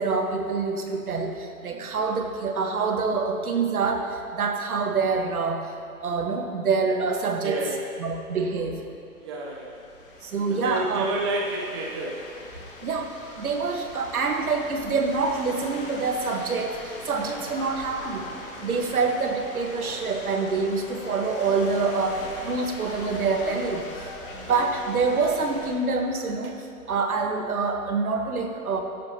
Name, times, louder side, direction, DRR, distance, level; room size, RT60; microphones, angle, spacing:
voice 1, 0.0-5.7 6.0-7.6 8.0-8.8 10.2-11.1 12.8-18.2 18.6-28.8, right 4 dB, 70° right, 4 dB, 1.5 m, -26 dB
voice 2, 7.4-7.7 9.2-9.8 10.5-12.1, right 2 dB, 20° right, -2 dB, 0.7 m, -30 dB
sound 1, 9.3-25.7, left 2 dB, 35° left, 1.8 m, -41 dB
14.5 x 10.0 x 2.9 m, 2.6 s
hypercardioid pair, 155°, 44 cm